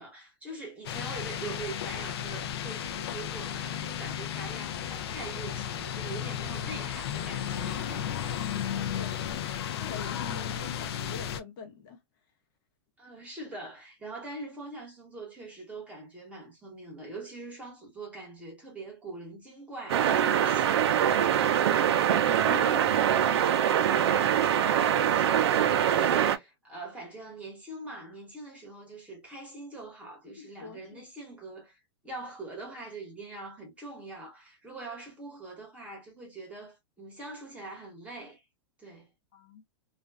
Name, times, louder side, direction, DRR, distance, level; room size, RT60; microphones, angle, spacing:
voice 1, 0.0-8.4 13.0-21.4 24.7-38.4 38.8-39.1, right 2 dB, 10° right, 1.1 m, -43 dB
sound 1, 0.8-11.4, left 9 dB, 70° left, 0.5 m, -34 dB
voice 2, 8.5-12.0 21.7-23.4 30.3-31.0 39.3-39.6, left 6 dB, 50° left, 0.9 m, -44 dB
sound 2, 19.9-26.4, right 9 dB, 75° right, 0.5 m, -24 dB
2.5 x 2.2 x 2.3 m
hypercardioid pair, 150°, 14 cm